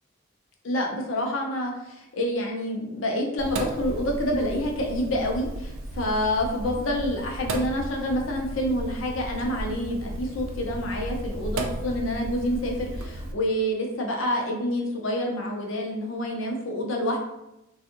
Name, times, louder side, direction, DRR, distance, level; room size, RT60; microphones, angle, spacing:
voice 1, 0.6-17.2, left 1 dB, 75° left, 1 dB, 0.6 m, -28 dB
Sink (filling or washing), 3.4-13.3, right 1 dB, 90° right, 0.4 m, -34 dB
3.4 x 2.3 x 2.9 m, 0.89 s
head